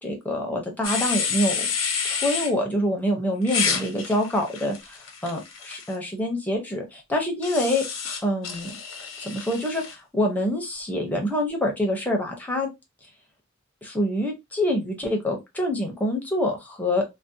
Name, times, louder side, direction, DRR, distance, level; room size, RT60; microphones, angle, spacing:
voice 1, 0.0-1.7 2.0-7.8 8.2-8.7 9.2-12.7 13.8-17.0, left 1 dB, 10° left, 0.6 m, -26 dB
sound 1, 0.8-2.5 3.4-5.9 7.4-9.9, left 6 dB, 90° left, 0.7 m, -29 dB
2.6 x 2.0 x 2.6 m
head